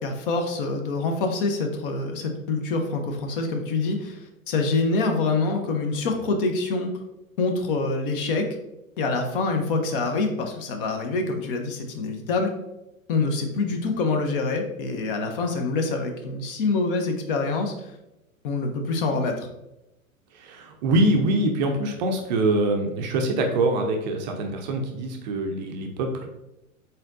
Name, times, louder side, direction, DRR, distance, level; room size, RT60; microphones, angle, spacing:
voice 1, 0.0-6.9 7.4-8.5 9.0-12.5 13.1-17.9 18.4-19.5, left 3 dB, 40° left, 4 dB, 0.7 m, -26 dB
voice 2, 20.3-26.3, right 2 dB, 35° right, 3 dB, 0.5 m, -24 dB
4.2 x 3.9 x 2.5 m, 0.93 s
figure-of-eight pair, 100°, 41 cm